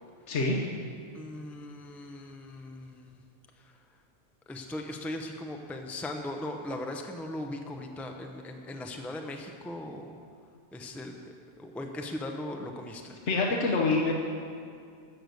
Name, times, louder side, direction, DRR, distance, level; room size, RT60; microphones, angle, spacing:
voice 1, 0.3-0.6 13.3-14.1, left 3 dB, 75° left, -2 dB, 1.3 m, -25 dB
voice 2, 1.1-3.2 4.5-10.2 10.7-13.1, left 1 dB, ahead, 3 dB, 0.6 m, -39 dB
13.5 x 6.7 x 7.9 m, 2.3 s
omnidirectional pair, 1.2 m